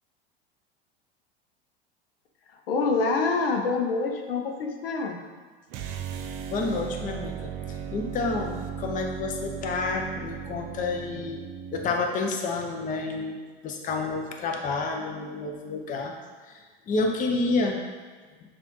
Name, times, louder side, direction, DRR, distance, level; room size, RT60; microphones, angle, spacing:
voice 1, 2.7-5.2, left 4 dB, 75° left, 3 dB, 0.6 m, -26 dB
sound 1, 5.7-12.0, right 7 dB, 40° right, 0.4 m, -36 dB
voice 2, 6.5-11.4 11.7-16.1 16.5-17.8, left 3 dB, 30° left, 2 dB, 0.6 m, -29 dB
6.7 x 2.5 x 3.0 m, 1.4 s
hypercardioid pair, 85°, 29 cm